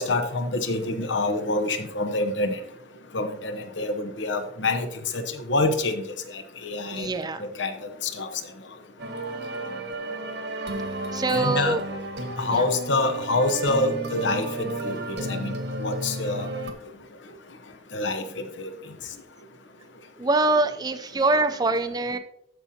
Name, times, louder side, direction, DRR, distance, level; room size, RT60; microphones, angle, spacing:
voice 1, 0.0-2.6 3.1-4.9 5.1-6.0 6.6-7.1 7.6-7.7 8.0-8.3 11.3-11.8 12.4-16.5 17.9-18.2 18.6-18.7, left 2 dB, 80° left, 7 dB, 0.9 m, -26 dB
voice 2, 6.9-7.5 11.1-11.8 12.5-12.6 20.2-22.2, right 2 dB, 20° right, 10 dB, 0.5 m, -24 dB
sound 1, 9.0-16.7, right 1 dB, 65° right, 1.1 m, -32 dB
14.0 x 5.4 x 2.8 m, 0.77 s
head